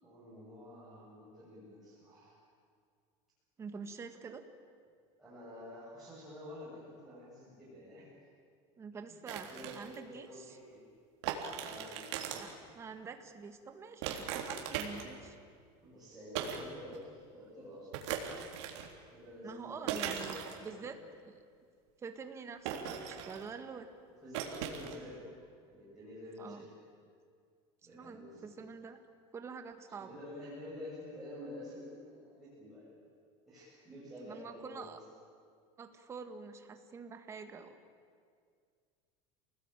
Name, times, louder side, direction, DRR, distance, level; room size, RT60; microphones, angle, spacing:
voice 1, 0.0-2.4 5.2-8.2 9.3-10.8 11.6-12.8 15.8-18.0 19.1-21.0 24.1-26.7 27.8-28.6 29.9-33.0 33.5-35.0, left 1 dB, 5° right, -11 dB, 7.6 m, -49 dB
voice 2, 3.6-4.4 8.8-10.4 12.4-12.5 12.7-15.4 19.4-20.4 20.6-21.0 21.2-21.4 22.0-23.9 26.4-26.7 27.9-29.0 29.3-30.1 34.2-35.0 35.8-37.7, right 5 dB, 20° right, 7 dB, 1.7 m, -46 dB
sound 1, 9.3-10.0 11.2-12.5 14.0-15.3 16.3-16.6 16.9-17.0 17.9-19.0 19.9-20.7 22.6-23.5 24.3-24.9, right 8 dB, 85° right, 3.5 m, -39 dB
29.0 x 19.5 x 9.1 m, 2.1 s
cardioid pair, 170°, 14 cm